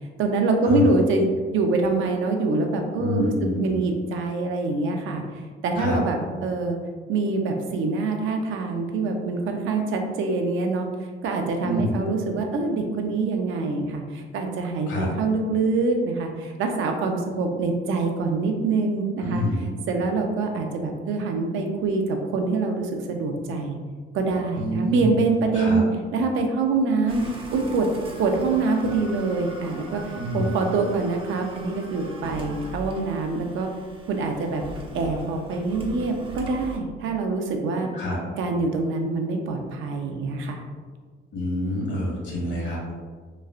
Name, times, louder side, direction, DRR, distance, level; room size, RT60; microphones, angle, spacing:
voice 1, 0.2-3.3 3.6-5.2 5.6-6.8 7.1-10.9 11.2-19.4 19.9-23.8 24.1-25.8 26.1-27.9 28.2-33.7 34.1-34.6 34.9-37.9 38.4-40.6, right 3 dB, 80° right, 3 dB, 0.5 m, -25 dB
voice 2, 2.9-3.8 5.7-6.0 11.6-12.0 14.9-15.1 19.2-19.7 24.5-25.1 25.5-25.8 30.1-30.5 37.9-38.2 41.3-42.9, left 1 dB, 70° left, -4 dB, 1.1 m, -27 dB
sound 1, 27.1-36.8, right 1 dB, 25° right, 0.5 m, -40 dB
3.0 x 2.3 x 2.4 m, 1.5 s
cardioid pair, 90°, 20 cm